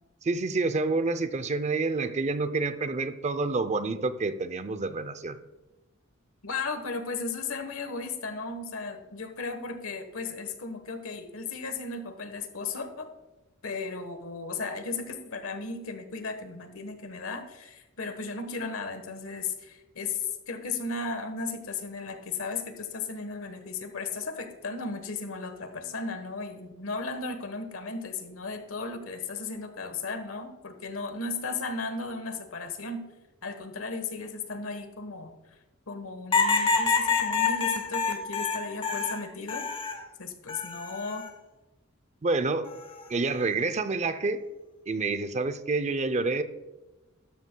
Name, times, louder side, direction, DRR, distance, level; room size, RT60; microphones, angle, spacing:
voice 1, 0.2-5.4 42.2-42.7 43.1-44.4 44.9-46.4, right 3 dB, 35° right, 12 dB, 0.5 m, -28 dB
voice 2, 6.4-13.1 13.6-33.1 33.4-35.3 35.9-39.6 40.2-41.3, left 4 dB, 75° left, 8 dB, 1.3 m, -35 dB
sound 1, 36.3-40.0 40.5-41.3 42.7-43.1, left 5 dB, 25° left, 0.8 m, -27 dB
13.0 x 12.5 x 2.3 m, 1.1 s
head